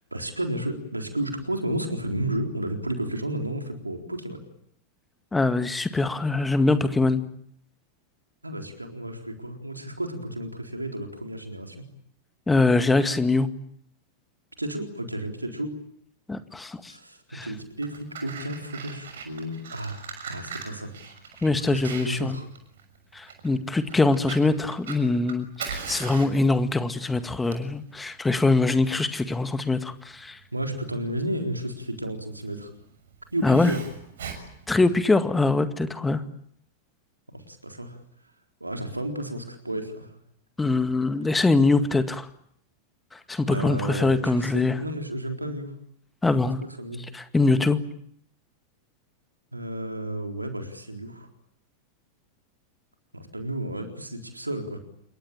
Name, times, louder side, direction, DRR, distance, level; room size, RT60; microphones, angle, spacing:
voice 1, 0.0-4.4 8.4-11.8 14.6-15.8 16.9-21.1 21.6-22.5 30.5-32.7 33.3-33.8 37.3-38.0 38.6-40.1 43.4-45.7 46.8-47.0 49.5-51.3 53.1-54.8, right 1 dB, 85° right, 4 dB, 4.0 m, -32 dB
voice 2, 5.3-7.2 12.5-13.5 16.3-16.9 17.3-17.5 21.4-22.4 23.1-30.4 33.4-33.7 34.7-36.2 40.6-42.3 43.3-44.7 46.2-46.6 47.1-47.8, left 3 dB, 10° left, 11 dB, 2.0 m, -23 dB
Fire, 17.6-35.4, right 6 dB, 60° right, 6.5 m, -41 dB
27.5 x 23.0 x 8.8 m, 0.69 s
figure-of-eight pair, 90°, 0 cm